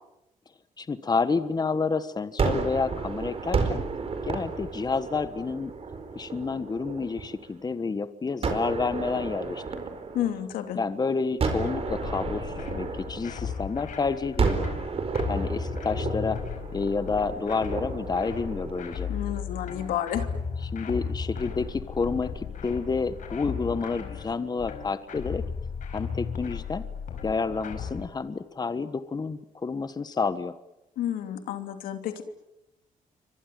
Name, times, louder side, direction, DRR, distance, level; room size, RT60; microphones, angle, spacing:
voice 1, 0.8-3.8 4.2-5.7 6.1-9.6 10.7-14.6 15.3-16.4 16.7-19.1 20.7-25.4 25.9-26.8 27.2-30.5, left 4 dB, 30° left, 12 dB, 1.4 m, -29 dB
Gunshot gunfire, 2.4-7.5 8.4-10.8 11.4-13.9 14.4-19.6, right 4 dB, 45° right, 4.5 m, -32 dB
voice 2, 10.1-10.8 19.1-20.3 31.0-32.2, left 10 dB, 90° left, 7 dB, 2.9 m, -30 dB
sound 1, 11.5-28.1, left 6 dB, 65° left, 5.1 m, -35 dB
29.0 x 24.5 x 7.7 m, 0.88 s
cardioid pair, 90°, 14 cm